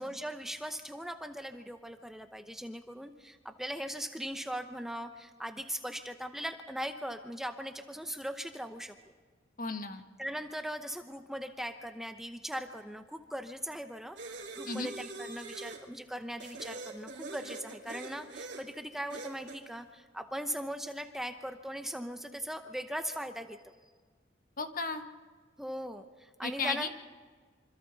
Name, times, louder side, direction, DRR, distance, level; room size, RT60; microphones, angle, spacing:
voice 1, 0.0-8.9 10.2-14.2 14.5-23.7 25.6-26.9, equal, ahead, 6 dB, 0.8 m, -39 dB
voice 2, 9.6-10.0 14.7-14.9 24.6-25.0 26.4-26.9, left 4 dB, 45° left, 6 dB, 1.5 m, -34 dB
sound 1, 14.2-15.8 16.4-18.7 19.1-19.6, right 3 dB, 65° right, 3.7 m, -43 dB
26.0 x 25.5 x 4.1 m, 1.5 s
head